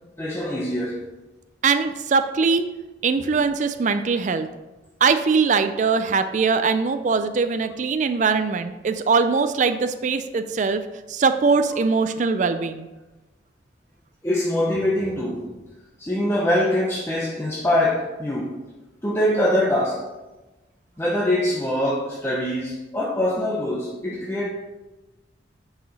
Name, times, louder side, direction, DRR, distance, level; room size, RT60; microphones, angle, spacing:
voice 1, 0.2-1.0 14.2-15.6 16.0-18.6 19.0-20.0 21.0-24.5, left 1 dB, 15° left, 0.7 m, -23 dB
voice 2, 1.6-2.7 3.0-4.5 5.0-12.9, right 5 dB, 40° right, 0.4 m, -21 dB
9.9 x 4.9 x 4.1 m
head